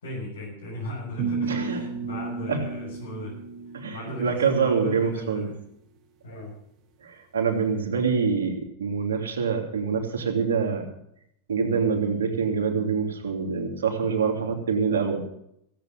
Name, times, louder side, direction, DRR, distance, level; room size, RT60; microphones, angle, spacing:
voice 1, 0.0-3.4 3.9-5.6 6.2-6.5, left 1 dB, 80° left, -5 dB, 6.6 m, -36 dB
sound 1, 1.2-4.3, right 4 dB, 40° right, 1.9 m, -33 dB
voice 2, 1.4-1.9 2.5-2.6 3.7-5.5 7.0-10.8 11.5-15.2, right 5 dB, 80° right, 2 dB, 3.1 m, -25 dB
15.5 x 8.2 x 7.5 m, 0.73 s
hypercardioid pair, 100°, 0 cm